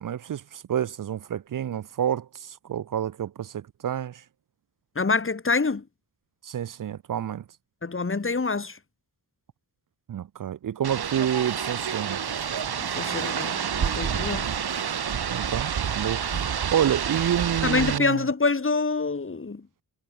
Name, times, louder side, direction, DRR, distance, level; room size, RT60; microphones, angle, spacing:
voice 1, 0.0-4.2 6.4-7.4 10.1-12.2 15.3-16.4 16.7-18.2, right 10 dB, 60° right, 0.6 m, -28 dB
voice 2, 5.0-5.8 7.8-8.8 12.9-14.6 16.3-16.5 17.6-19.6, left 4 dB, 35° left, 2.1 m, -26 dB
sound 1, 10.8-18.0, right 8 dB, 80° right, 2.2 m, -28 dB
wide cardioid pair, 85°, 38 cm